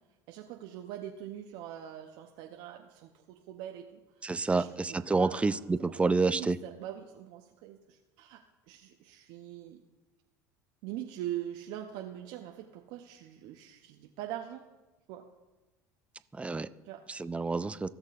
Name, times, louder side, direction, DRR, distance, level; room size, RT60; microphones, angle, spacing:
voice 1, 0.3-4.0 4.5-5.4 5.8-9.8 10.8-14.6 15.1-15.3 16.8-17.0, right 12 dB, 65° right, 3 dB, 0.6 m, -43 dB
voice 2, 4.2-6.6 16.4-16.7 17.1-17.9, right 3 dB, 15° right, 14 dB, 0.4 m, -28 dB
17.5 x 6.5 x 2.4 m, 1.1 s
hypercardioid pair, 75°, 9 cm